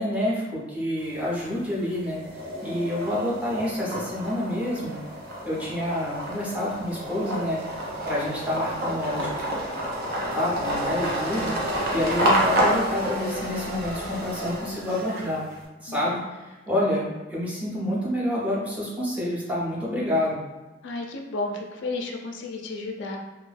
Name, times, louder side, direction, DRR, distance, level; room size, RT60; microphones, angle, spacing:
voice 1, 0.0-5.0 5.4-7.6 8.1-9.3 10.3-11.5 11.9-15.5 15.8-20.4, left 1 dB, 5° right, -6 dB, 0.6 m, -28 dB
sound 1, 1.0-1.6 2.0-15.5, right 1 dB, 55° right, 0.6 m, -29 dB
voice 2, 20.8-23.2, left 3 dB, 65° left, 2 dB, 0.3 m, -32 dB
2.3 x 2.2 x 3.2 m, 1.2 s
head